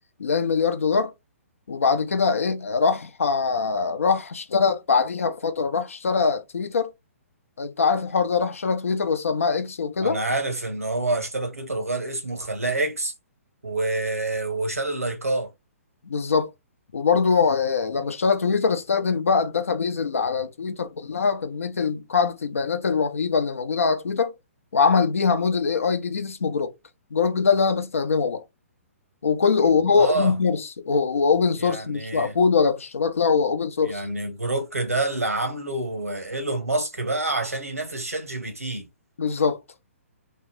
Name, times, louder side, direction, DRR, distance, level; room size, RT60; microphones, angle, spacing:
voice 1, 0.2-1.1 1.7-6.9 7.6-10.2 16.0-16.5 16.9-24.3 24.7-26.7 27.1-28.4 29.2-34.1 39.2-39.6, left 5 dB, 70° left, 0.7 m, -23 dB
voice 2, 10.0-13.1 13.6-15.5 29.6-30.3 31.6-32.3 33.8-38.9, right 2 dB, 85° right, 1.2 m, -27 dB
3.2 x 2.1 x 3.2 m
figure-of-eight pair, 125°, 8 cm